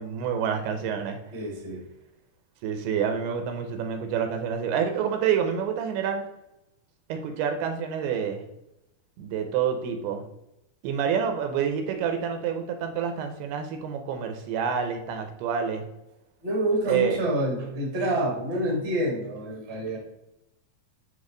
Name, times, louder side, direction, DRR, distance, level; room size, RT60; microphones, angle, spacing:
voice 1, 0.0-1.2 2.6-6.2 7.1-8.4 9.2-10.2 10.8-15.9 16.9-17.2, right 7 dB, 80° right, 5 dB, 2.7 m, -28 dB
voice 2, 1.3-1.8 16.4-20.0, right 1 dB, 30° right, -2 dB, 1.1 m, -27 dB
9.2 x 3.4 x 3.8 m, 0.88 s
omnidirectional pair, 4.6 m